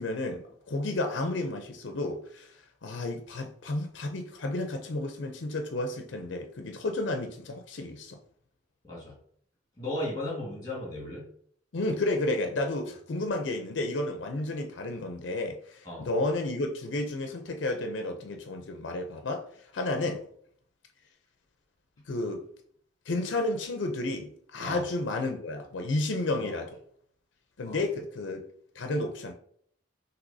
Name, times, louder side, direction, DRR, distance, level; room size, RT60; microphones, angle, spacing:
voice 1, 0.0-2.6 2.8-8.2 11.7-19.4 19.7-20.2 22.1-22.4 23.1-26.8 27.6-28.5 28.8-29.3, left 2 dB, 80° left, 4 dB, 0.5 m, -32 dB
voice 2, 9.8-11.3 15.8-16.1 24.6-24.8 26.3-26.5 27.6-27.8, left 1 dB, 20° left, -3 dB, 1.6 m, -35 dB
6.0 x 2.9 x 2.7 m, 0.63 s
head